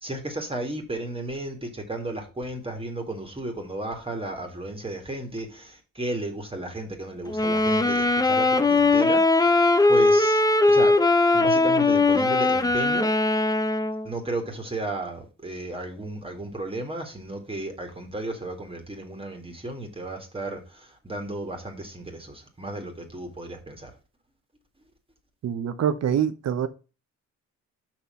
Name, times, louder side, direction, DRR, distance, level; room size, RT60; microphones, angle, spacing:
voice 1, 0.0-9.5 9.9-10.4 10.7-11.0 11.3-13.1 14.1-20.6 21.0-23.9, right 2 dB, 20° right, 2.1 m, -34 dB
sound 1, 7.3-14.1, left 2 dB, 10° left, 0.8 m, -20 dB
voice 2, 25.4-26.7, right 9 dB, 60° right, 1.0 m, -25 dB
6.0 x 5.9 x 5.6 m
cardioid pair, 90°, 30 cm